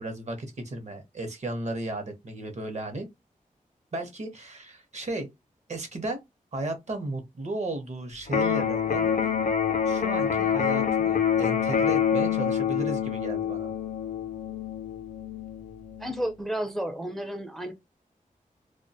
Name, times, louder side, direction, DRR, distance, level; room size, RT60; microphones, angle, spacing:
voice 1, 0.0-3.1 3.9-5.3 5.7-6.2 6.5-9.1 9.8-13.7, right 2 dB, 50° right, 0.7 m, -34 dB
Electric guitar, 8.3-16.3, left 8 dB, 65° left, 0.4 m, -26 dB
voice 2, 16.0-17.7, right 1 dB, ahead, 0.4 m, -32 dB
2.2 x 2.1 x 2.6 m
wide cardioid pair, 85°, 14 cm